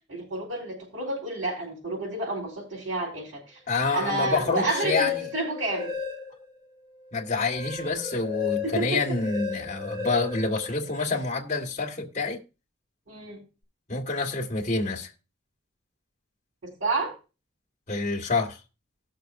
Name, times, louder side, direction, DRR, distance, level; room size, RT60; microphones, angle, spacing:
voice 1, 0.1-3.6 3.9-5.9 8.6-9.2 13.1-13.4 16.6-17.1, right 2 dB, 80° right, 4.6 m, -30 dB
voice 2, 3.7-5.3 7.1-12.4 13.9-15.1 17.9-18.6, left 3 dB, 40° left, 1.6 m, -27 dB
sound 1, 3.9-6.6 7.0-11.3, left 7 dB, 55° right, 6.2 m, -35 dB
18.0 x 6.6 x 2.6 m
head